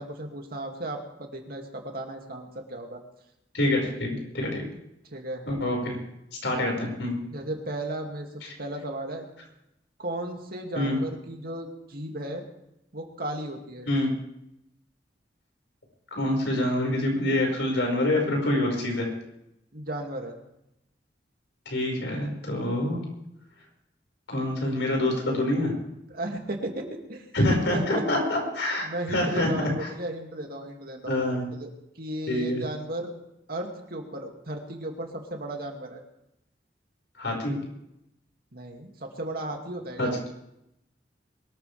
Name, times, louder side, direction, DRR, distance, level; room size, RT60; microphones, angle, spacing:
voice 1, 0.0-3.0 5.1-5.4 7.3-9.3 10.0-12.4 12.9-13.9 19.7-20.3 26.1-27.3 27.7-28.0 28.8-31.2 31.6-31.7 32.0-33.1 33.5-36.0 38.5-40.1, right 1 dB, 55° right, 2 dB, 2.5 m, -35 dB
voice 2, 3.5-4.7 5.5-6.0 6.4-7.1 10.8-11.0 13.9-14.1 16.1-19.1 21.7-23.0 24.3-25.7 27.3-29.9 31.0-31.5 32.3-32.6 37.2-37.5 40.0-40.1, left 1 dB, 85° left, 1 dB, 5.5 m, -26 dB
23.0 x 13.5 x 3.5 m, 0.83 s
head